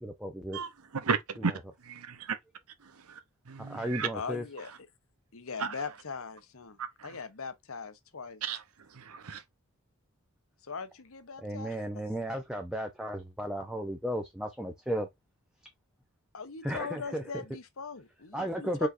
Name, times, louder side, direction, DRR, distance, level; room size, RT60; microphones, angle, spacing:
voice 1, 0.0-0.6 1.4-1.6 3.6-4.5 11.4-15.1 16.6-17.4 18.3-18.9, right 1 dB, 5° right, 0.7 m, -34 dB
voice 2, 1.0-1.5 1.8-2.4 2.8-3.2 3.5-4.1 5.6-5.7 6.8-7.1 8.4-8.6 8.9-9.4, right 5 dB, 90° right, 0.8 m, -34 dB
voice 3, 4.1-4.7 5.3-6.8 7.0-8.4 10.7-11.7 16.3-18.9, left 5 dB, 70° left, 0.9 m, -40 dB
5.1 x 4.1 x 2.6 m
head